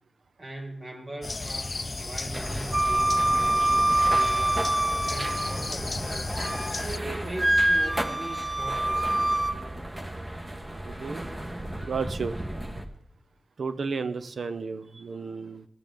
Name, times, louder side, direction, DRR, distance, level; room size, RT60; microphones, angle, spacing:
voice 1, 0.4-4.7 5.1-6.3 6.7-9.5 12.4-12.6, right 1 dB, 50° right, -1 dB, 2.5 m, -40 dB
sound 1, 1.2-7.0, left 3 dB, 45° left, 0.4 m, -34 dB
sound 2, 2.3-12.8, right 1 dB, 25° right, 1.4 m, -36 dB
Wind instrument woodwind instrument, 2.7-5.7 6.1-6.8 7.4-9.6, right 1 dB, 5° right, 0.8 m, -25 dB
voice 2, 10.8-11.3 11.8-12.4 13.6-15.7, right 4 dB, 75° right, 12 dB, 0.7 m, -33 dB
16.5 x 6.9 x 3.8 m, 0.71 s
cardioid pair, 40°, 0 cm